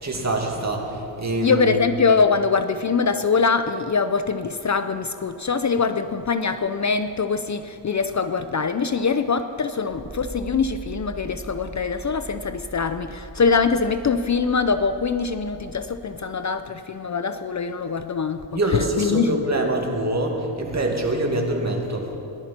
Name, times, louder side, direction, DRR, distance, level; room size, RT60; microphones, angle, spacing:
voice 1, 0.0-1.9 18.5-22.1, right 1 dB, 35° right, 1 dB, 2.4 m, -24 dB
voice 2, 1.4-18.4 18.7-19.4, left 5 dB, 40° left, 10 dB, 0.6 m, -23 dB
sound 1, 9.9-15.8, right 3 dB, 70° right, 2.8 m, -40 dB
19.0 x 11.5 x 4.4 m, 2.8 s
cardioid pair, 70°, 44 cm